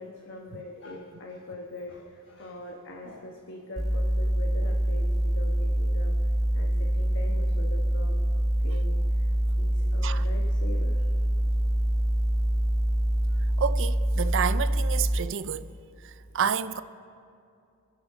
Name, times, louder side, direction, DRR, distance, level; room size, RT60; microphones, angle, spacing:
voice 1, 0.0-6.1 6.5-8.1 8.6-11.1 13.3-13.4, left 2 dB, 55° left, 1.3 m, -42 dB
sound 1, 3.8-15.2, right 1 dB, ahead, 0.9 m, -25 dB
voice 2, 13.6-15.7 16.0-16.8, right 7 dB, 60° right, 0.5 m, -29 dB
28.5 x 10.5 x 3.8 m
head